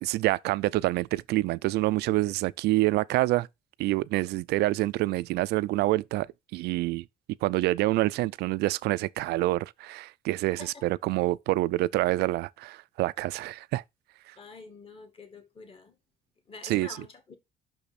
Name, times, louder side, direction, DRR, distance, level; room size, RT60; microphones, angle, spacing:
voice 1, 0.0-3.5 3.8-6.3 6.5-7.0 7.4-13.8 16.6-16.9, right 18 dB, 75° right, 0.4 m, -27 dB
voice 2, 14.4-16.0 16.5-17.4, left 4 dB, 35° left, 1.9 m, -47 dB
6.1 x 5.5 x 4.1 m
cardioid pair, 110°, 17 cm